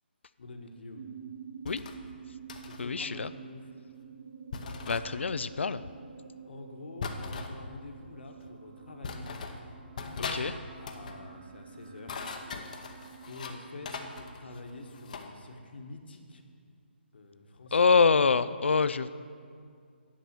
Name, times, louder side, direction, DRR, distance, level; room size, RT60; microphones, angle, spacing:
voice 1, 0.4-1.0 2.6-3.7 6.4-9.3 10.8-12.1 13.3-16.4 17.1-17.8, left 2 dB, 60° left, 4 dB, 1.3 m, -46 dB
sound 1, 0.9-14.3, right 7 dB, 45° right, 0.4 m, -49 dB
sound 2, 1.6-2.0 2.5-2.9 4.5-5.0 7.0-7.5 8.4-8.5 9.0-9.6 10.0-10.4 10.7-11.2 11.9-13.6 13.8-15.3, left 4 dB, 40° left, 0.8 m, -39 dB
voice 2, 2.8-3.3 4.9-5.8 10.3-10.6 17.7-19.1, left 5 dB, 90° left, 14 dB, 0.4 m, -25 dB
10.0 x 5.4 x 7.4 m, 2.2 s
hypercardioid pair, 165°, 6 cm